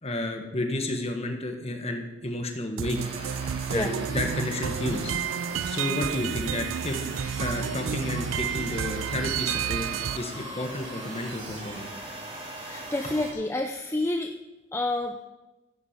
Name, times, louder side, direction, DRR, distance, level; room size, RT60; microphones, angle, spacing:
voice 1, 0.0-3.0 3.7-5.2 5.6-7.1 7.4-9.9 10.2-11.9, left 1 dB, 30° left, 4 dB, 1.4 m, -31 dB
sound 1, 2.8-10.2, right 8 dB, 80° right, 0.4 m, -31 dB
sound 2, 2.9-13.3, right 2 dB, 30° right, 2.9 m, -40 dB
voice 2, 12.6-14.3 14.7-15.3, left 2 dB, 10° left, 4 dB, 0.5 m, -29 dB
14.0 x 8.6 x 5.2 m, 1.1 s
head